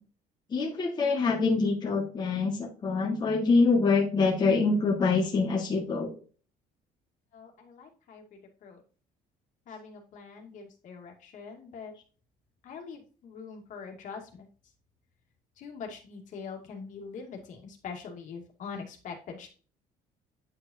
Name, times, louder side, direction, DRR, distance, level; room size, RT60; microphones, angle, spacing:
voice 1, 0.5-6.1, left 4 dB, 30° left, -1 dB, 1.7 m, -25 dB
voice 2, 7.3-8.2 8.6-8.8 9.7-11.9 12.6-14.5 15.6-19.5, left 5 dB, 55° left, 2 dB, 2.3 m, -43 dB
9.7 x 5.0 x 2.7 m, 0.38 s
cardioid pair, 150°, 15 cm